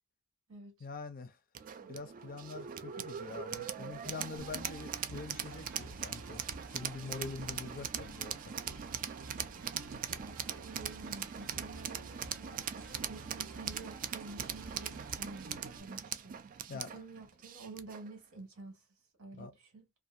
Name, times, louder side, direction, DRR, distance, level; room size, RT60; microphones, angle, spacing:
voice 1, 0.8-1.4 1.9-6.4 6.7-8.5 16.7-17.0 19.4-19.5, left 4 dB, 40° left, 0.5 m, -44 dB
sound 1, 1.5-18.1, right 8 dB, 40° right, 0.3 m, -41 dB
sound 2, 4.4-15.8, right 3 dB, 60° right, 0.8 m, -50 dB
voice 2, 10.2-16.4 16.7-18.8 19.2-19.9, right 3 dB, 80° right, 1.5 m, -50 dB
2.6 x 2.4 x 2.5 m
head